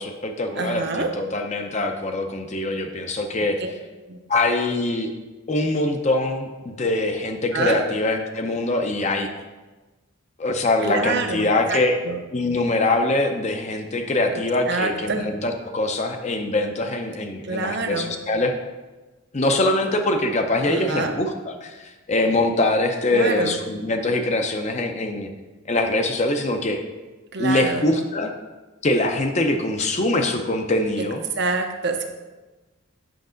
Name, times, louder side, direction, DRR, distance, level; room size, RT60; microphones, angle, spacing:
voice 1, 0.0-3.6 4.3-5.1 5.5-9.3 10.4-12.0 12.3-18.5 19.3-25.3 25.7-26.8 27.4-28.3 28.8-31.2, left 2 dB, 35° left, 5 dB, 0.6 m, -23 dB
voice 2, 0.6-1.1 3.6-3.7 4.1-4.2 7.5-7.8 10.8-11.8 12.0-12.2 14.3-14.4 14.7-15.3 17.4-18.2 20.7-21.1 23.1-23.6 27.3-27.9 31.0-31.1 31.4-32.1, right 3 dB, 55° right, 5 dB, 0.7 m, -26 dB
7.8 x 6.0 x 3.8 m, 1.2 s
head